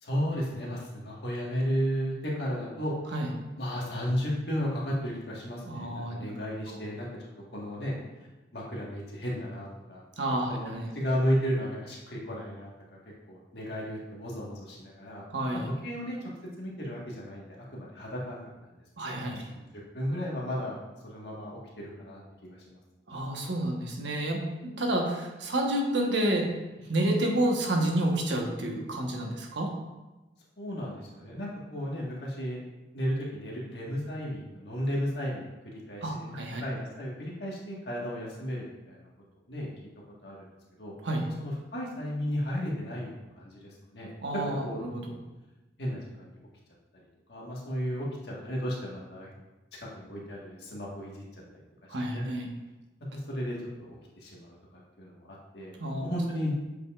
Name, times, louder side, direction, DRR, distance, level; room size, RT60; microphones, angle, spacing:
voice 1, 0.0-2.9 3.6-7.1 7.5-10.0 10.4-13.0 13.3-15.2 15.8-16.3 16.6-17.4 17.7-19.7 19.9-20.8 21.0-22.8 30.6-32.6 32.9-39.1 39.5-39.7 40.2-40.5 40.8-40.9 41.4-44.1 44.4-45.1 45.8-46.4 46.9-47.0 47.3-49.4 49.8-51.2 51.5-52.2 53.1-54.5 55.0-55.7 56.0-56.5, equal, 65° left, -4 dB, 1.6 m, -34 dB
voice 2, 5.6-6.2 6.7-6.8 10.2-10.9 15.3-15.7 19.0-19.4 23.1-26.5 26.9-29.7 36.0-36.6 41.0-41.3 44.2-45.0 51.9-52.5 55.8-56.0, right 1 dB, 85° right, 0 dB, 1.2 m, -29 dB
7.9 x 5.1 x 2.5 m, 1.1 s
head